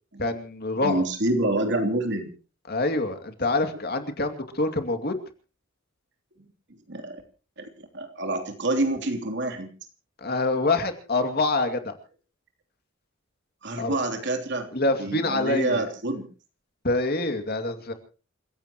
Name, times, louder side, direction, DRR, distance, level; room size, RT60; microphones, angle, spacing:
voice 1, 0.2-1.0 2.7-5.2 10.2-11.9 13.8-14.0 14.7-15.9 16.8-17.9, left 2 dB, 50° left, 7 dB, 2.5 m, -26 dB
voice 2, 0.8-2.3 3.7-3.8 6.9-7.2 7.6-9.7 13.6-14.7 15.0-16.3, right 2 dB, 60° right, 5 dB, 3.3 m, -27 dB
29.0 x 16.5 x 3.1 m, 0.37 s
head